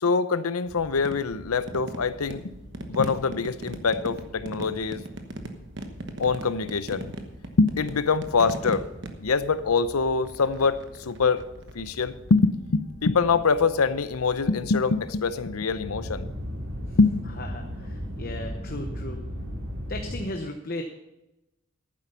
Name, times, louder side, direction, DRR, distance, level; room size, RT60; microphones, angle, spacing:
voice 1, 0.0-2.5 2.9-5.0 6.2-7.1 7.6-8.8 9.2-10.8 11.1-11.4 11.7-16.3 17.0-17.2, left 4 dB, 90° left, 14 dB, 0.7 m, -24 dB
sound 1, 0.7-20.3, equal, 85° right, 2.5 m, -40 dB
sound 2, 1.0-12.4 14.2-14.6 17.7-17.9, right 1 dB, 55° right, 1.2 m, -39 dB
voice 2, 17.4-19.2 19.9-20.8, left 1 dB, 45° left, 4 dB, 0.9 m, -36 dB
11.5 x 9.4 x 5.7 m, 0.95 s
head